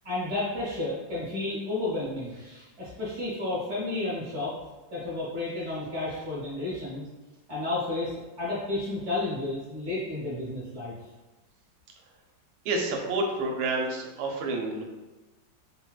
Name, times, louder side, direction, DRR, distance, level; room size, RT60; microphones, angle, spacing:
voice 1, 0.0-4.5 4.9-7.0 7.5-8.1 8.4-10.9, left 2 dB, 60° right, -7 dB, 0.8 m, -32 dB
voice 2, 12.6-14.8, right 2 dB, 85° right, 1 dB, 1.4 m, -29 dB
3.8 x 2.1 x 2.2 m, 1.1 s
omnidirectional pair, 2.2 m